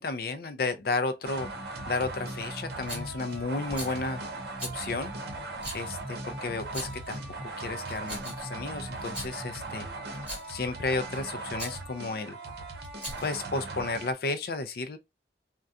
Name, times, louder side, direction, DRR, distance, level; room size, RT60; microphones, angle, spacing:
voice 1, 0.0-1.5 1.9-4.2 4.6-5.1 5.7-9.9 10.5-12.4 13.2-15.0, left 3 dB, 55° left, 0.4 m, -33 dB
sound 1, 1.2-14.1, right 2 dB, 65° right, 0.7 m, -38 dB
Rattle, 2.9-3.1 3.7-4.0 4.6-4.8 5.6-5.8 6.6-7.1 7.8-8.5 9.0-9.3 10.1-10.5 11.5-11.8 12.8-13.4, equal, 5° right, 1.1 m, -39 dB
3.7 x 2.2 x 2.4 m
head